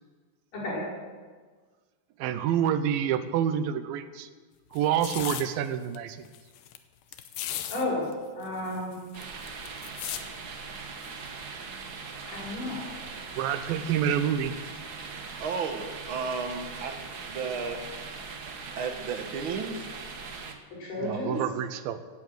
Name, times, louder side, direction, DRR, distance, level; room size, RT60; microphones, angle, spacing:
voice 1, 2.2-4.3 4.7-6.3 13.3-14.5 21.0-22.0, right 9 dB, 90° right, 11 dB, 2.7 m, -27 dB
sound 1, 4.7-5.4 5.9-6.0 6.2-6.8 7.1-7.8 8.1-8.2 8.4-10.2 11.0-11.3, left 11 dB, 85° left, 2.7 m, -36 dB
voice 2, 7.7-8.0 8.3-9.0 12.3-12.8 20.8-21.4, left 1 dB, 65° left, -5 dB, 6.8 m, -32 dB
sound 2, 9.1-20.5, right 4 dB, 70° right, 0.9 m, -40 dB
voice 3, 15.4-17.0 17.3-17.8 18.8-19.9, right 5 dB, 55° right, 5 dB, 1.5 m, -33 dB
17.0 x 11.0 x 7.8 m, 1.5 s
omnidirectional pair, 4.0 m